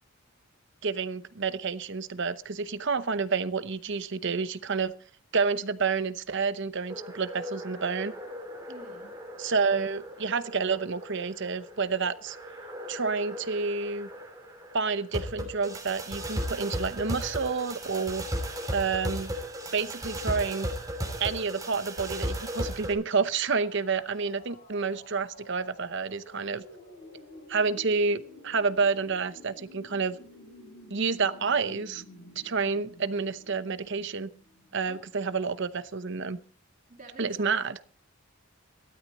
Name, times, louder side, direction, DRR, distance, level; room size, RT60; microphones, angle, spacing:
voice 1, 0.8-4.9 5.3-8.1 9.4-12.4 12.9-14.1 14.7-18.2 18.7-19.3 19.7-20.7 21.2-26.6 27.5-30.2 30.9-32.0 32.4-34.3 34.7-36.4 37.2-37.8, right 5 dB, 55° right, 13 dB, 0.8 m, -29 dB
sound 1, 6.9-22.9, equal, 15° right, 3.1 m, -36 dB
voice 2, 8.7-9.1 34.8-35.4 36.9-37.3, right 2 dB, 40° right, 1 dB, 2.9 m, -50 dB
sound 2, 23.4-35.2, left 1 dB, 60° left, 7.8 m, -51 dB
16.0 x 12.5 x 4.2 m, 0.43 s
head